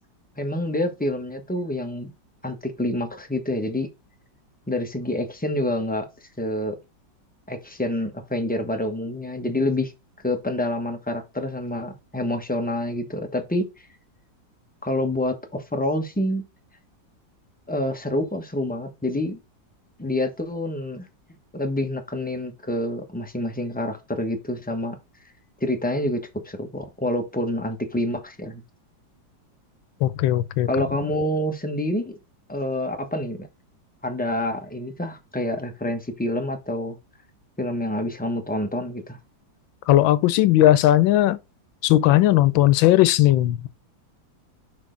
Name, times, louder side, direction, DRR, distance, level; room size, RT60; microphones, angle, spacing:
voice 1, 0.4-2.1 2.4-3.9 4.7-6.1 6.4-6.8 7.5-9.9 10.2-13.7 14.8-16.4 17.7-19.4 20.0-21.1 21.5-25.0 25.6-28.6 30.7-32.2 32.5-33.5 34.0-37.0 37.6-39.2, left 1 dB, 10° left, 0.5 m, -27 dB
voice 2, 30.0-30.7 39.9-41.4 41.8-43.7, left 14 dB, 90° left, 1.4 m, -17 dB
6.1 x 4.4 x 3.8 m
omnidirectional pair, 2.0 m